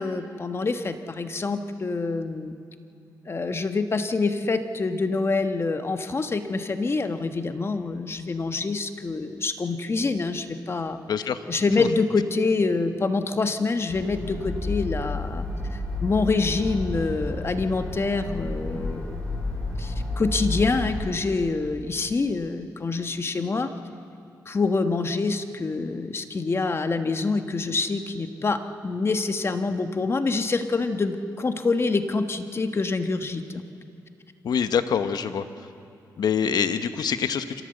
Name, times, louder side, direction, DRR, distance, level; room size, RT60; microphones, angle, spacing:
voice 1, 0.0-2.6 3.2-11.0 11.5-15.4 15.7-19.3 19.8-23.7 24.4-33.6, left 3 dB, 35° left, 8 dB, 1.3 m, -26 dB
voice 2, 11.1-11.4 11.8-11.9 34.4-35.5 36.2-37.6, left 7 dB, 70° left, 10 dB, 1.1 m, -25 dB
sound 1, 13.9-21.0, left 2 dB, 15° left, 6.9 m, -31 dB
25.5 x 16.5 x 7.9 m, 2.6 s
cardioid pair, 85°, 7 cm